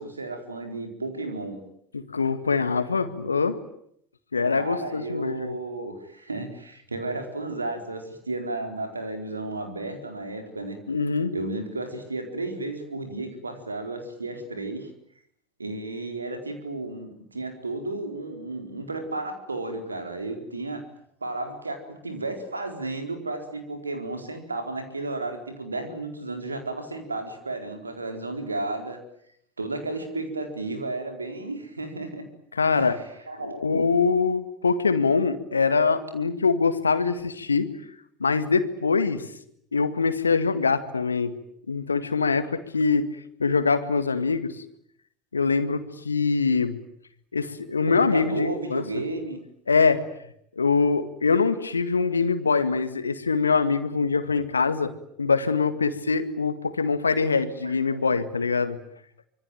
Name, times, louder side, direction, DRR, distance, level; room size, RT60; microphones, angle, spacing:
voice 1, 0.0-1.6 4.5-10.8 11.3-14.9 15.6-20.9 21.2-29.0 29.6-32.2 32.7-32.9 33.3-33.6 47.8-49.4 57.6-58.0, right 2 dB, 85° right, 6 dB, 4.3 m, -33 dB
voice 2, 1.9-3.6 4.3-5.6 10.9-11.3 32.5-33.0 33.4-37.7 38.2-39.3 39.7-41.3 41.7-43.1 43.4-44.6 45.3-46.8 47.3-48.8 49.7-50.0 50.6-54.9 55.2-58.8, left 4 dB, 80° left, 11 dB, 1.9 m, -23 dB
25.5 x 24.5 x 9.3 m, 0.71 s
figure-of-eight pair, 75°, 0 cm